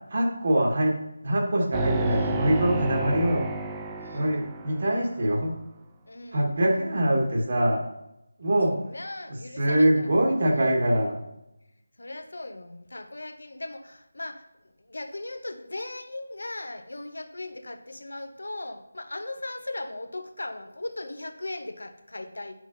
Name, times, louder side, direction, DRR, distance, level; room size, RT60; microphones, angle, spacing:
voice 1, 0.1-0.9 1.2-3.5 4.1-5.5 6.3-7.8 8.4-8.7 9.3-11.2, right 1 dB, 45° right, 0 dB, 1.5 m, -23 dB
sound 1, 1.7-5.2, right 2 dB, 10° right, 0.4 m, -31 dB
voice 2, 2.1-2.4 4.0-4.4 6.1-6.5 8.7-10.1 10.5-10.7 12.0-14.4 14.8-22.5, left 2 dB, 65° left, 7 dB, 0.9 m, -38 dB
9.5 x 6.1 x 2.7 m, 0.88 s
figure-of-eight pair, 160°, 0 cm